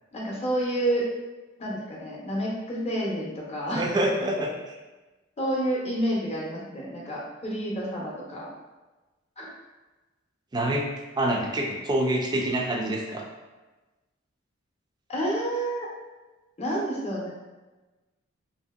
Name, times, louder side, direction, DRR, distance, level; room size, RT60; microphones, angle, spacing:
voice 1, 0.1-1.1 1.6-3.9 5.4-8.5 9.4-9.5 15.1-15.9 16.6-17.3, right 1 dB, 35° left, -4 dB, 0.6 m, -29 dB
voice 2, 3.7-4.8 10.5-10.9 11.2-13.3, right 1 dB, 20° right, 0 dB, 0.3 m, -26 dB
2.8 x 2.6 x 2.3 m, 1.2 s
head